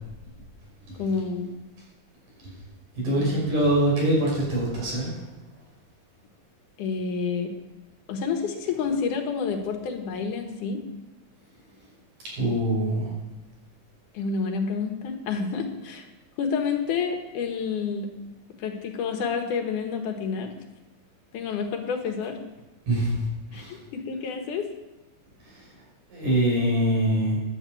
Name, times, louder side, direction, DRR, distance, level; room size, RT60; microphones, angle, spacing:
voice 1, 1.0-1.5 6.8-7.5 8.1-10.8 14.1-16.1 16.4-18.1 18.6-20.5 21.3-22.4 23.5-24.7, left 5 dB, 80° left, 4 dB, 2.8 m, -29 dB
voice 2, 3.0-5.1 12.4-13.1 22.9-23.1 23.5-23.8 26.1-27.4, right 1 dB, 85° right, -5 dB, 7.2 m, -23 dB
11.0 x 7.7 x 8.2 m, 1.0 s
omnidirectional pair, 3.5 m